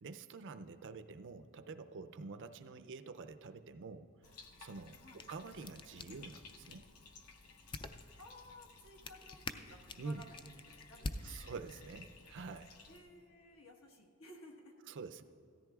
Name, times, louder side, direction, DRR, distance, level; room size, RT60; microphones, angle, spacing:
voice 1, 0.0-4.1 4.6-6.8 10.0-10.2 11.2-12.7 14.9-15.2, right 4 dB, 55° right, 10 dB, 0.5 m, -47 dB
Bathtub (filling or washing), 4.2-13.0, left 4 dB, 85° left, 0.8 m, -58 dB
sound 1, 4.9-12.0, left 3 dB, 20° left, 0.3 m, -49 dB
voice 2, 8.2-11.5 12.9-14.7, left 1 dB, 65° left, 1 dB, 1.4 m, -57 dB
16.5 x 13.5 x 2.4 m, 2.3 s
head